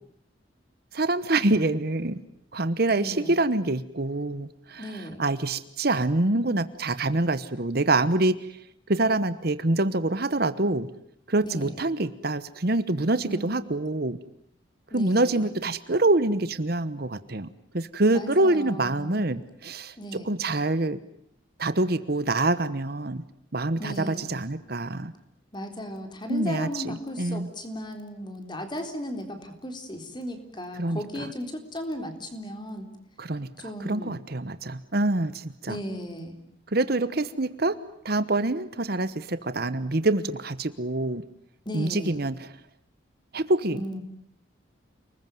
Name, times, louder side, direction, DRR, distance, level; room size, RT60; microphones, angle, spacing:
voice 1, 0.9-2.2 2.5-4.9 5.2-8.5 8.9-10.9 11.3-14.2 14.9-17.5 17.7-21.0 21.6-23.2 23.5-25.1 26.3-26.8 27.2-27.5 30.8-31.3 33.2-33.5 33.8-35.8 36.7-37.8 38.0-41.2 41.7-42.3 43.3-43.8, right 2 dB, 50° right, 13 dB, 1.1 m, -25 dB
voice 2, 2.9-3.4 4.8-5.2 11.4-11.8 13.2-13.5 14.9-15.5 18.1-19.3 20.0-20.3 23.8-24.3 25.5-32.9 33.6-34.1 35.7-36.4 41.7-42.2 43.7-44.0, equal, 25° left, 6 dB, 3.8 m, -36 dB
29.5 x 21.0 x 9.3 m, 0.70 s
head